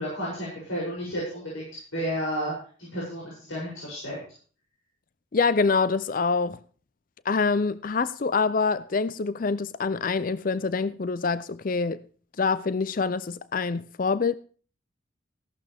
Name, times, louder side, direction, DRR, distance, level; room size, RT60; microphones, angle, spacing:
voice 1, 0.0-2.5 2.8-4.2, equal, 90° left, 7.2 m, -32 dB
voice 2, 5.3-6.6 7.3-12.0 12.4-14.4, left 4 dB, 45° left, 0.5 m, -25 dB
16.0 x 12.0 x 3.5 m
head